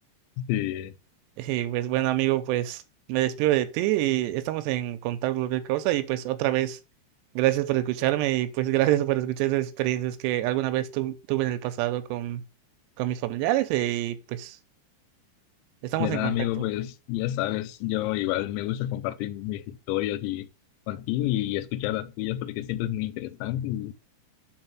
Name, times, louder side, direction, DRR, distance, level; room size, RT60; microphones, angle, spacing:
voice 1, 0.4-0.9 16.0-20.5 20.9-23.9, left 14 dB, 90° left, 3.0 m, -29 dB
voice 2, 1.4-2.8 3.1-6.8 7.4-12.4 13.0-14.6 15.8-16.7, right 15 dB, 80° right, 2.7 m, -26 dB
5.7 x 4.7 x 5.9 m
omnidirectional pair, 5.3 m